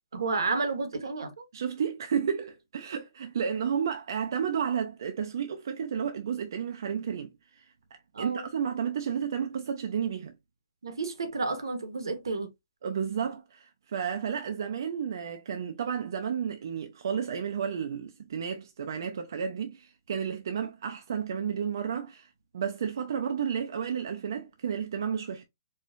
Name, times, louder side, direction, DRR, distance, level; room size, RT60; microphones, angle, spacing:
voice 1, 0.1-1.4 8.1-8.4 10.8-12.5, right 3 dB, 85° right, 1.1 m, -31 dB
voice 2, 1.5-7.6 8.2-10.3 12.8-25.4, right 7 dB, 60° right, 0.5 m, -32 dB
4.4 x 2.4 x 2.4 m
hypercardioid pair, 150°, 2 cm